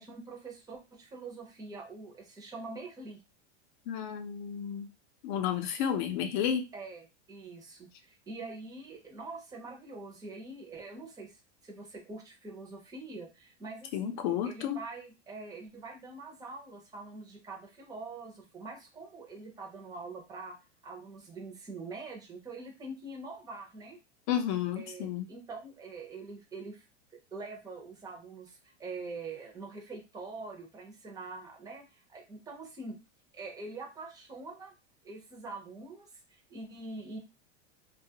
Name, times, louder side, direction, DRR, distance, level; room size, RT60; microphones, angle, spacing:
voice 1, 0.0-3.2 6.7-14.2 14.4-20.6 20.8-24.0 24.7-26.9 27.1-33.0 33.3-34.7 35.0-37.2, right 3 dB, 10° right, 0.6 m, -44 dB
voice 2, 3.9-4.9 5.2-6.6 13.9-14.8 24.3-25.3, left 9 dB, 45° left, 0.5 m, -31 dB
2.8 x 2.3 x 2.8 m
supercardioid pair, 150°, 35 cm